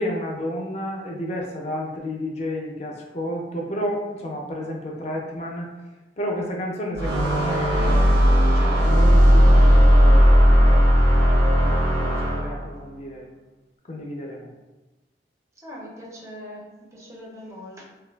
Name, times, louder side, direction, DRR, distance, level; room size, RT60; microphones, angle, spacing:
voice 1, 0.0-5.7 6.2-10.8 11.4-13.3 13.9-14.5, equal, 35° left, -1 dB, 0.4 m, -31 dB
sound 1, 7.0-12.7, equal, 80° right, 0.7 m, -16 dB
voice 2, 15.6-17.8, equal, 15° right, -4 dB, 0.5 m, -41 dB
3.1 x 2.2 x 2.2 m, 1.1 s
head